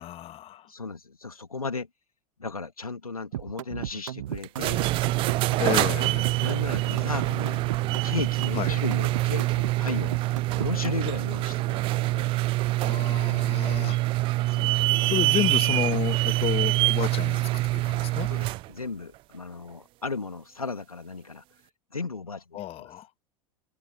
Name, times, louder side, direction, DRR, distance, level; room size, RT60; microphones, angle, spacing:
voice 1, 0.0-0.7 5.6-6.4 8.5-8.8 12.8-14.0 15.1-17.4 17.7-18.3 22.5-23.1, left 13 dB, 30° left, 1.7 m, -31 dB
voice 2, 0.7-1.9 2.4-4.9 6.4-7.6 8.0-10.2 10.6-12.4 14.5-14.9 18.3-21.4 21.9-22.9, left 4 dB, 85° left, 2.6 m, -35 dB
sound 1, 3.3-11.1, right 12 dB, 65° right, 1.4 m, -35 dB
sound 2, 4.4-18.7, right 19 dB, 30° right, 0.3 m, -25 dB
figure-of-eight pair, 85°, 18 cm